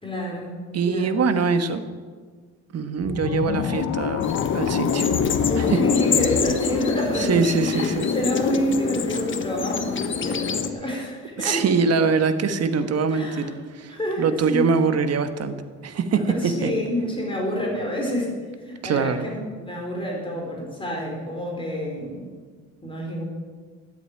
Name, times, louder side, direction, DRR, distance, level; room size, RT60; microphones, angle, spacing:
voice 1, 0.0-0.5 0.9-1.2 5.4-11.6 12.8-13.6 13.9-14.7 16.3-22.3 22.8-23.2, equal, 15° left, -1 dB, 4.4 m, -28 dB
voice 2, 0.7-1.8 2.7-4.3 4.5-5.1 5.6-5.8 7.2-8.1 11.4-13.5 13.7-15.6 15.8-16.7 18.8-19.3, right 5 dB, 55° right, 9 dB, 1.3 m, -23 dB
sound 1, 3.0-8.3, left 9 dB, 65° left, 0.8 m, -29 dB
sound 2, 4.2-10.7, left 6 dB, 40° left, 1.2 m, -25 dB
13.5 x 8.1 x 9.4 m, 1.5 s
cardioid pair, 90°, 30 cm